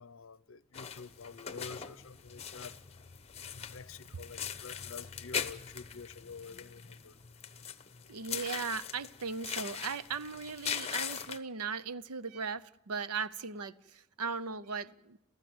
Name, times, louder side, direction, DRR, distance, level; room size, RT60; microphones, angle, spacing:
voice 1, 0.0-2.7 3.5-7.2, left 5 dB, 65° left, 0.7 m, -48 dB
sound 1, 0.7-11.4, left 7 dB, 30° left, 0.9 m, -41 dB
voice 2, 8.1-15.2, right 5 dB, 85° right, 0.7 m, -38 dB
28.5 x 15.5 x 7.9 m
head